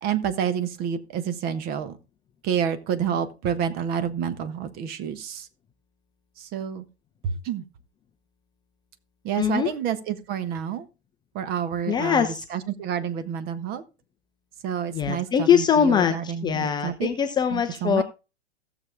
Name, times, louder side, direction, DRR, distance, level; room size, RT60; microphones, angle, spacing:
voice 1, 0.0-2.0 2.4-5.5 6.4-6.8 7.2-7.6 9.2-10.8 11.3-13.8 14.6-17.1 17.5-18.0, right 8 dB, 30° right, 12 dB, 1.3 m, -29 dB
voice 2, 9.4-9.7 11.9-12.4 14.9-18.0, left 8 dB, 15° left, 8 dB, 0.7 m, -22 dB
16.0 x 7.1 x 3.5 m, 0.30 s
figure-of-eight pair, 105°, 32 cm